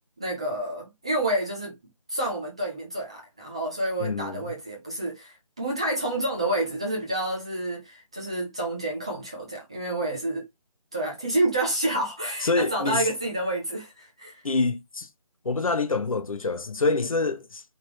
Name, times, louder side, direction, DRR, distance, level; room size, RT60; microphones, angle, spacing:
voice 1, 0.2-1.8 2.1-10.4 10.9-14.4, right 1 dB, 10° right, 0.5 m, -29 dB
voice 2, 4.0-4.4 12.4-13.1 14.4-15.1 15.4-17.6, left 3 dB, 65° left, 1.0 m, -26 dB
4.7 x 3.5 x 3.0 m
figure-of-eight pair, 170°, 19 cm